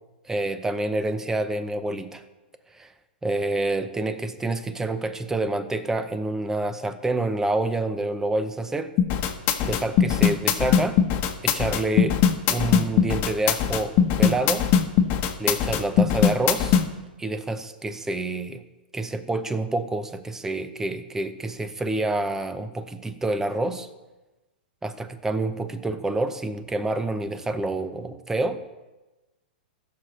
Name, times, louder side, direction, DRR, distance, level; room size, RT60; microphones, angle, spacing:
voice 1, 0.3-2.2 2.7-2.9 3.2-8.9 9.6-11.0 11.4-12.2 12.5-14.7 15.4-16.8 17.2-18.6 18.9-23.9 24.8-28.6, right 2 dB, 10° right, 11 dB, 0.7 m, -27 dB
sound 1, 9.0-16.8, left 8 dB, 35° left, 1.2 m, -20 dB
19.0 x 6.4 x 3.3 m, 1.1 s
hypercardioid pair, 130°, 6 cm